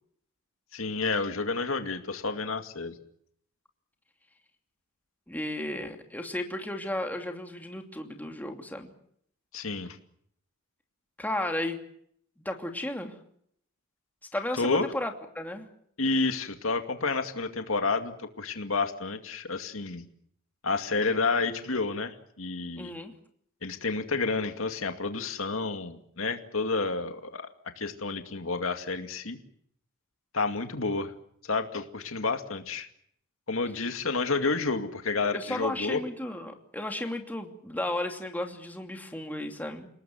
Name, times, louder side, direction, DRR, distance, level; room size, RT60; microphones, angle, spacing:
voice 1, 0.7-2.9 9.5-10.0 14.6-14.9 16.0-20.0 20.6-22.9 23.6-27.5 27.8-29.4 30.3-31.1 31.4-32.9 33.5-36.0, left 3 dB, 75° left, 7 dB, 2.3 m, -30 dB
voice 2, 5.3-8.9 11.2-11.8 12.4-13.1 14.3-15.6 22.8-23.1 35.3-39.9, left 1 dB, 10° left, 4 dB, 2.8 m, -34 dB
29.0 x 19.0 x 7.8 m, 0.69 s
head